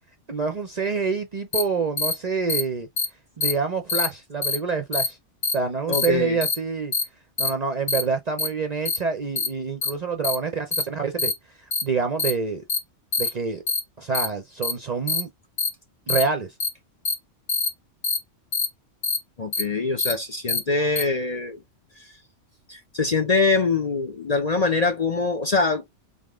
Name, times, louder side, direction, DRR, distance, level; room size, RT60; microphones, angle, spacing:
voice 1, 0.3-2.9 3.4-5.2 5.5-6.9 7.4-11.3 11.8-12.6 13.2-13.6 14.0-15.3 16.1-16.5, right 4 dB, 45° right, 0.6 m, -27 dB
sound 1, 1.5-1.6 2.0-2.1 2.5-2.6 3.0-3.1 3.4-3.5 3.9-4.1 4.4-4.6 4.9-5.1 5.4-5.5 5.9-6.1 6.4-6.5 6.9-7.0 7.4-7.5 7.9-8.0 8.4-8.5 8.9-9.0 9.4-9.5 9.8-9.9 10.2-10.4 10.7-10.8 11.2-11.3 11.7-11.8 12.2-12.3 12.7-12.8 13.1-13.3 13.7-13.8 14.1-14.3 14.6-14.7 15.1-15.2 15.6-15.7 16.1-16.2 16.6-16.7 17.1-17.2 17.5-17.7 18.0-18.2 18.5-18.7 19.0-19.2 19.5-19.6 20.0-20.1 20.5-20.6 21.0-21.1, left 4 dB, 60° left, 1.4 m, -24 dB
voice 2, 5.9-6.4 19.4-21.6 22.0-22.1 22.7-25.8, left 3 dB, 40° left, 0.7 m, -23 dB
3.9 x 3.7 x 3.6 m
omnidirectional pair, 1.3 m